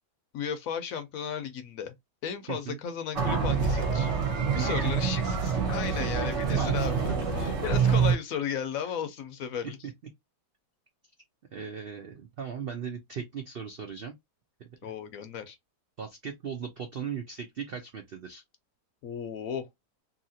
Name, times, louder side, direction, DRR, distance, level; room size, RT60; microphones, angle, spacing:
voice 1, 0.3-1.9 2.2-4.1 4.5-9.8 14.8-15.6 19.0-19.7, left 8 dB, 65° left, 0.9 m, -35 dB
sound 1, 3.1-8.2, right 6 dB, 50° right, 1.0 m, -26 dB
voice 2, 4.5-4.9 5.9-6.1 6.5-6.9 11.5-14.1 14.8-14.9 16.0-18.4, right 7 dB, 75° right, 0.5 m, -37 dB
2.8 x 2.8 x 2.7 m
omnidirectional pair, 1.7 m